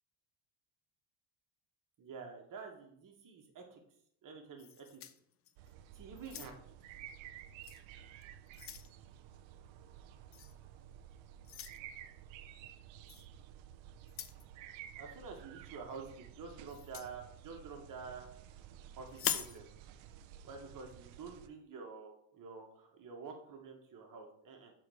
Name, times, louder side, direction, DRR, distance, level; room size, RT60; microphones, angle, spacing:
voice 1, 2.0-3.8 4.2-5.0 5.9-6.5 15.0-18.3 19.0-19.7 20.4-24.7, right 5 dB, 40° right, 2 dB, 1.8 m, -48 dB
sound 1, 4.6-5.7 6.2-6.8 7.6-7.8 8.2-8.9 10.3-10.5 11.4-11.8 13.1-13.3 14.0-14.4 16.7-17.1 19.1-19.6, left 9 dB, 30° left, 0.4 m, -41 dB
sound 2, 5.6-21.5, right 10 dB, 75° right, 0.7 m, -53 dB
6.2 x 4.5 x 6.3 m, 0.68 s
cardioid pair, 140°, 47 cm